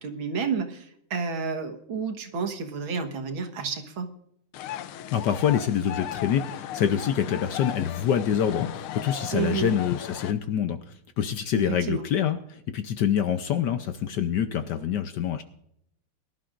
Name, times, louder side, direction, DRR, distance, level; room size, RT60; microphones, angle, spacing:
voice 1, 0.0-4.1 9.3-9.8 11.6-12.1, right 5 dB, 70° right, 5 dB, 2.2 m, -30 dB
sound 1, 4.5-10.3, left 11 dB, 90° left, 1.6 m, -36 dB
voice 2, 5.1-10.8 11.2-15.4, left 9 dB, 65° left, 9 dB, 1.1 m, -26 dB
23.0 x 12.0 x 2.5 m, 0.73 s
omnidirectional pair, 2.3 m